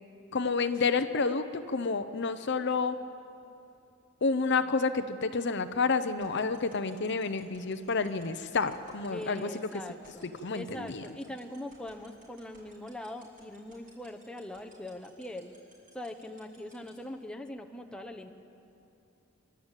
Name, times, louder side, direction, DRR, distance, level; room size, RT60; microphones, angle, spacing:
voice 1, 0.3-3.0 4.2-9.7 10.4-11.0, left 4 dB, 60° left, 10 dB, 0.8 m, -29 dB
sound 1, 6.0-16.9, right 2 dB, 45° right, 7.6 m, -58 dB
voice 2, 9.1-15.5 15.9-18.3, left 1 dB, 5° left, 3 dB, 1.0 m, -42 dB
26.5 x 12.5 x 9.1 m, 2.7 s
head